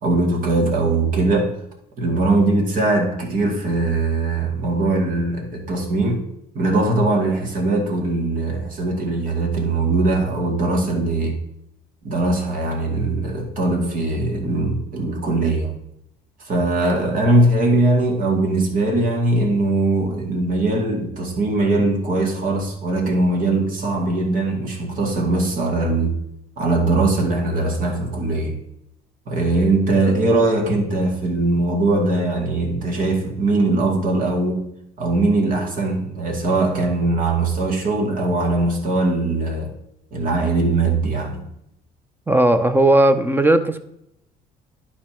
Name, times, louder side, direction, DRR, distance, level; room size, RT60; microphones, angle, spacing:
voice 1, 0.0-1.5 2.0-6.2 6.5-11.4 12.0-15.7 16.5-26.2 26.6-28.6 29.3-34.6 35.0-39.7 40.1-41.4, right 2 dB, 55° right, 1 dB, 2.3 m, -20 dB
voice 2, 42.3-43.8, right 1 dB, 10° right, 10 dB, 0.7 m, -16 dB
11.0 x 4.3 x 4.5 m, 0.78 s
cardioid pair, 110°, 17 cm